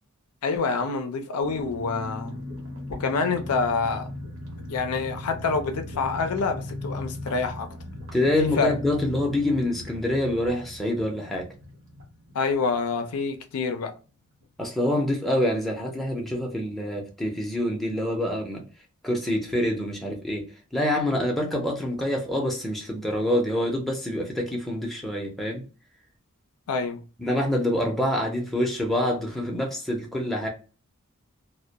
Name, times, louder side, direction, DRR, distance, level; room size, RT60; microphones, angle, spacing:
voice 1, 0.4-2.4 2.9-4.1 4.7-7.7 8.2-8.3 8.6-8.7 12.3-13.9 26.7-27.0, left 4 dB, 90° left, 0.4 m, -27 dB
sound 1, 1.4-13.8 14.0-14.1 14.4-14.7, left 1 dB, 60° right, 0.9 m, -38 dB
voice 2, 8.1-11.5 14.6-18.6 19.0-25.6 27.2-30.5, left 1 dB, ahead, 0.5 m, -26 dB
2.2 x 2.1 x 2.7 m
head